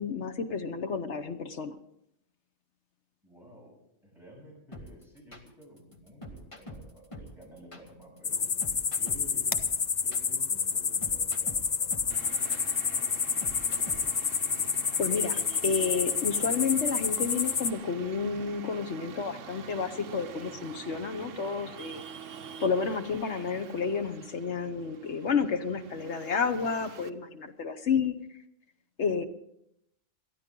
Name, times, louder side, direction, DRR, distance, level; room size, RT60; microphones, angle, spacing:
voice 1, 0.0-1.7 15.0-22.0 22.6-28.1 29.0-29.3, left 5 dB, 60° left, 9 dB, 1.2 m, -30 dB
voice 2, 3.2-3.8 4.0-8.5 9.0-9.6 10.0-12.6, equal, ahead, -3 dB, 7.4 m, -52 dB
sound 1, 4.7-14.3, equal, 25° left, 1.7 m, -45 dB
sound 2, 8.2-17.7, left 6 dB, 45° left, 0.6 m, -29 dB
Traffic noise roadway noise, 12.1-27.1, right 7 dB, 70° right, 1.2 m, -46 dB
22.5 x 14.5 x 3.8 m, 0.76 s
omnidirectional pair, 1.4 m